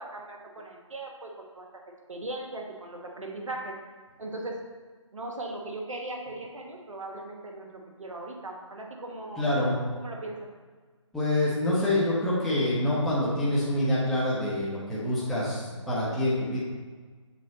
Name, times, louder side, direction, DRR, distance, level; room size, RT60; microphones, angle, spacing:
voice 1, 0.0-1.7 2.1-3.7 4.2-4.6 5.1-9.5 9.9-10.5, right 2 dB, 80° right, 1 dB, 1.3 m, -38 dB
voice 2, 9.4-9.8 11.1-16.6, left 1 dB, ahead, -9 dB, 0.7 m, -26 dB
6.4 x 4.0 x 4.1 m, 1.5 s
figure-of-eight pair, 150°, 16 cm